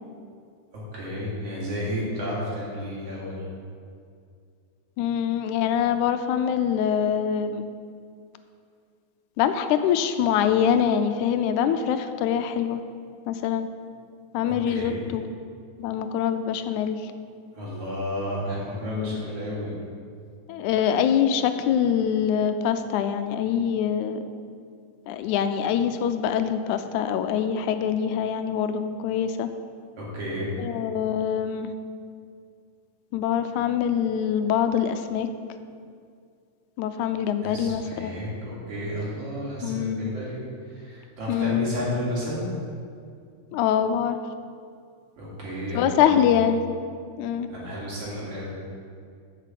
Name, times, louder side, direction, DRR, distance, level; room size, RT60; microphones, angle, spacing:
voice 1, 0.9-3.4 14.5-15.0 17.5-19.7 30.0-30.5 37.4-40.4 40.7-42.5 45.2-46.4 47.5-48.5, equal, 50° right, -6 dB, 3.7 m, -32 dB
voice 2, 5.0-7.6 9.4-12.8 13.3-13.7 14.3-15.3 15.8-17.0 18.8-19.3 20.5-24.2 25.1-29.5 30.6-31.7 33.1-35.3 36.8-38.1 39.6-40.1 41.3-41.7 43.5-44.2 45.7-46.6 47.2-47.5, left 8 dB, 85° left, 9 dB, 2.0 m, -24 dB
8.8 x 6.5 x 7.6 m, 2.3 s
omnidirectional pair, 3.4 m